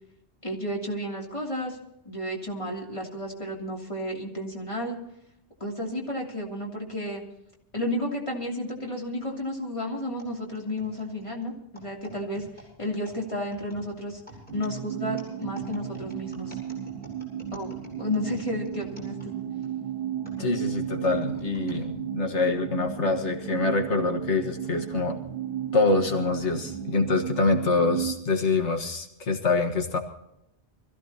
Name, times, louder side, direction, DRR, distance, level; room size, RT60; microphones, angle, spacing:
voice 1, 0.4-1.8 2.0-5.0 5.6-7.2 7.7-12.5 12.8-14.2 14.5-16.6 17.5-17.7 18.0-19.3, left 1 dB, 30° left, -2 dB, 3.0 m, -32 dB
sound 1, 10.2-19.7 20.2-21.8 22.5-22.6 23.4-23.7, equal, 10° left, 7.0 m, -49 dB
sound 2, 14.5-28.1, right 10 dB, 55° right, 1.4 m, -34 dB
voice 2, 20.4-25.2 25.7-30.0, left 3 dB, 90° left, 3 dB, 1.8 m, -25 dB
25.0 x 15.0 x 2.9 m, 0.82 s
omnidirectional pair, 1.1 m